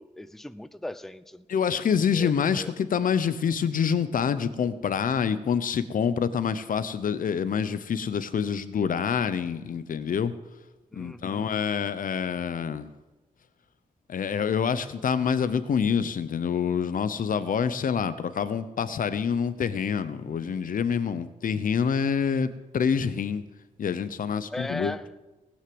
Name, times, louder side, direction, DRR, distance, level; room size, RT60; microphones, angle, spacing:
voice 1, 0.0-1.5 2.1-2.3 2.6-2.7 10.9-11.5 24.5-25.1, left 1 dB, ahead, 14 dB, 0.5 m, -37 dB
voice 2, 1.5-10.3 10.9-12.9 14.1-23.4 23.8-24.9, left 7 dB, 70° left, 13 dB, 0.9 m, -26 dB
19.0 x 6.4 x 7.9 m, 1.2 s
wide cardioid pair, 100°, 14 cm